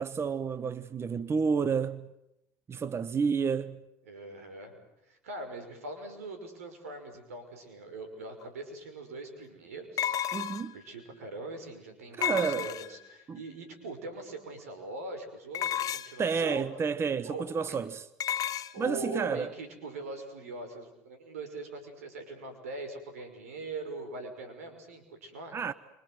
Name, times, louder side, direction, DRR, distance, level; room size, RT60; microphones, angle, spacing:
voice 1, 0.0-2.1 2.7-3.8 10.3-10.7 12.2-12.7 13.3-13.4 16.2-18.1 18.8-19.5 25.5-25.7, right 6 dB, 35° right, 1.1 m, -30 dB
voice 2, 4.1-4.8 5.1-10.1 10.7-16.7 17.3-17.8 18.7-25.6, right 2 dB, 90° right, 5.7 m, -42 dB
sound 1, 8.4-8.5 10.0-10.8 12.2-13.1 15.5-16.3 18.2-18.7, left 10 dB, 50° left, 1.4 m, -32 dB
28.5 x 26.0 x 7.9 m
hypercardioid pair, 70°, 8 cm